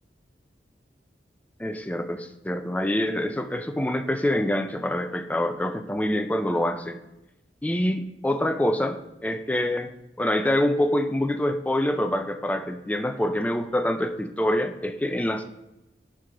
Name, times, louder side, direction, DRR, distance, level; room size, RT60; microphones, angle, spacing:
voice 1, 1.6-7.0 7.6-9.9 10.2-15.4, left 1 dB, 10° left, 7 dB, 0.4 m, -26 dB
10.0 x 3.9 x 4.8 m, 0.92 s
head